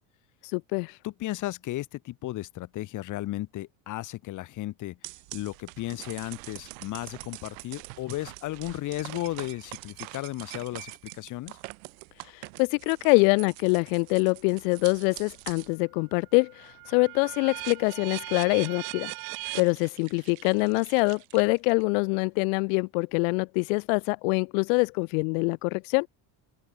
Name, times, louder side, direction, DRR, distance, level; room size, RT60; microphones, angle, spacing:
voice 1, 0.4-1.0 12.3-19.1 19.5-26.1, left 37 dB, 75° left, 0.5 m, -25 dB
voice 2, 1.0-11.6, left 16 dB, 45° left, 2.0 m, -35 dB
sound 1, 5.0-15.7 16.2-21.8, right 32 dB, 80° right, 1.0 m, -42 dB
cardioid pair, 140°, 41 cm